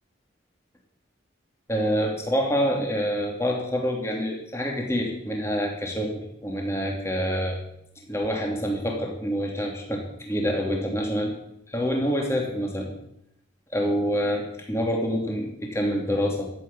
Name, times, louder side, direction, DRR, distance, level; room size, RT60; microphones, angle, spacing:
voice 1, 1.7-7.6 8.1-11.3 11.7-12.9 13.7-16.5, equal, 15° left, 0 dB, 2.8 m, -26 dB
13.5 x 8.0 x 8.8 m, 0.77 s
head